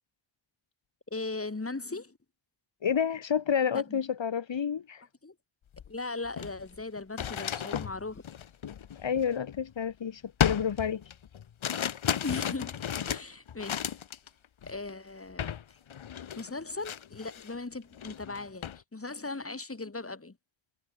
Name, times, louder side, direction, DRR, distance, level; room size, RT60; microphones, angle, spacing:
voice 1, 1.1-2.1 3.9-4.0 5.2-5.3 5.9-8.2 12.2-14.0 14.6-15.5 16.4-20.4, left 3 dB, 30° left, 7.4 m, -38 dB
voice 2, 2.8-5.0 9.0-11.0 13.1-13.2, left 7 dB, 70° left, 3.4 m, -29 dB
sound 1, 5.7-5.9 6.2-9.8 10.4-14.3 14.6-14.9 15.4-15.6 15.9-17.6 17.9-18.8, left 9 dB, 85° left, 2.8 m, -34 dB
cardioid pair, 70°, 46 cm